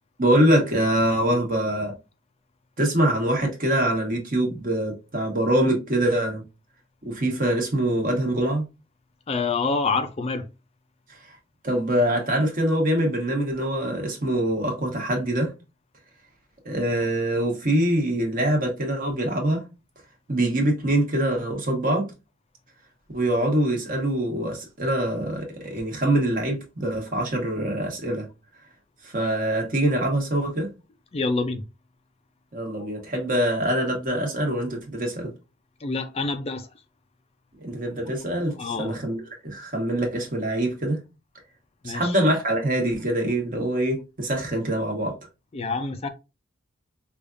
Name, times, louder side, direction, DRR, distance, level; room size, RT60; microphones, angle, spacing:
voice 1, 0.2-1.9 2.8-6.4 7.0-8.6 11.6-15.5 16.6-19.6 20.3-22.0 23.1-28.3 29.0-30.7 32.5-35.3 37.6-41.0 41.8-45.1, right 1 dB, 40° right, 1.1 m, -24 dB
voice 2, 9.3-10.5 31.1-31.6 35.8-36.7 38.6-39.0 41.8-42.1 45.5-46.1, left 4 dB, 30° left, 0.4 m, -27 dB
4.9 x 2.4 x 2.5 m
head